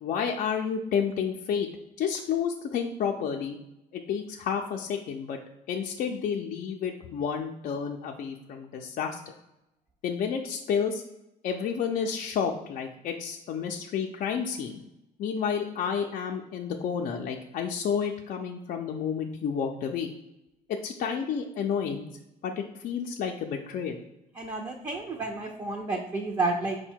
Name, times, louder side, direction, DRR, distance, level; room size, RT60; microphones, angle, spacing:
voice 1, 0.0-1.7 2.0-3.6 3.9-5.4 5.7-9.2 10.0-11.0 11.4-14.8 15.2-20.1 20.7-22.0 22.4-24.0, left 7 dB, 55° left, 1 dB, 0.4 m, -30 dB
voice 2, 24.3-26.9, right 3 dB, 25° right, 1 dB, 0.5 m, -31 dB
4.9 x 2.2 x 4.4 m, 0.89 s
cardioid pair, 110°, 17 cm